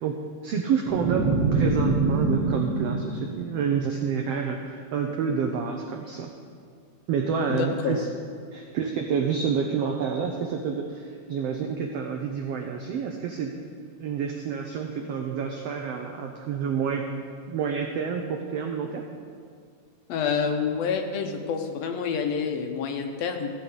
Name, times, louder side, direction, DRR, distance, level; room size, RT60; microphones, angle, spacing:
voice 1, 0.0-6.3 7.1-8.1 8.5-13.5 14.0-17.1 17.5-19.0, right 6 dB, 75° right, 3 dB, 1.4 m, -28 dB
sound 1, 0.9-4.1, right 3 dB, 60° right, 2.5 m, -25 dB
voice 2, 7.5-8.0 20.1-23.5, left 6 dB, 70° left, 5 dB, 1.8 m, -28 dB
15.5 x 5.7 x 8.0 m, 2.2 s
omnidirectional pair, 3.6 m